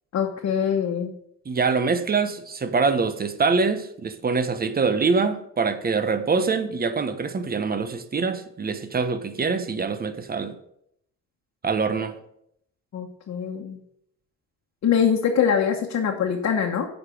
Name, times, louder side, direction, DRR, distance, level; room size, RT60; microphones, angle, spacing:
voice 1, 0.1-1.1 12.9-13.8 14.8-16.9, left 7 dB, 55° left, 1.2 m, -23 dB
voice 2, 1.4-10.6 11.6-12.2, right 4 dB, 30° right, 1.0 m, -24 dB
8.2 x 5.2 x 6.2 m
cardioid pair, 90°, 30 cm